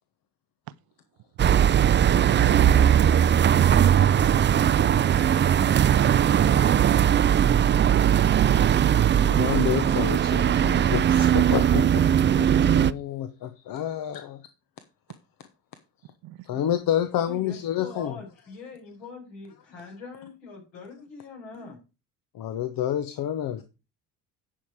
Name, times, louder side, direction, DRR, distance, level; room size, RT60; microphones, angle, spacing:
voice 1, 0.7-0.8 16.2-16.4, right 16 dB, 60° right, 0.7 m, -48 dB
sound 1, 1.4-12.9, right 9 dB, 25° right, 0.5 m, -19 dB
voice 2, 8.5-10.0 17.1-21.8, left 4 dB, 75° left, 5.5 m, -43 dB
voice 3, 9.2-12.0 12.4-14.4 16.4-18.1 22.3-23.6, left 10 dB, 55° left, 1.1 m, -29 dB
10.0 x 5.8 x 4.7 m
hypercardioid pair, 60°, 41 cm